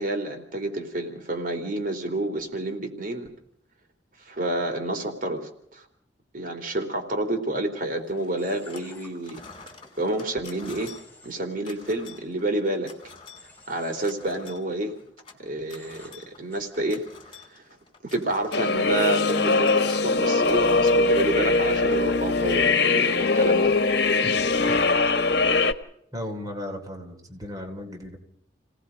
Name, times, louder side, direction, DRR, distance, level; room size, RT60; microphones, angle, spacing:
voice 1, 0.0-3.3 4.3-5.8 6.3-9.4 10.0-10.9 11.2-12.9 13.7-14.9 15.4-17.0 17.5-17.6 18.0-23.8, right 2 dB, 50° right, 4 dB, 3.4 m, -29 dB
sound 1, 8.1-8.9 9.2-21.6, left 5 dB, 30° left, 4.0 m, -48 dB
Human voice / Train, 8.4-9.1 10.6-11.4 13.4-14.1 15.8-16.1 16.5-16.6, left 2 dB, 10° left, 7.5 m, -49 dB
sound 2, 18.5-25.7, left 3 dB, 65° left, 1.4 m, -21 dB
voice 2, 26.1-28.2, left 1 dB, 20° right, 2 dB, 3.4 m, -36 dB
29.5 x 18.5 x 5.2 m, 0.71 s
head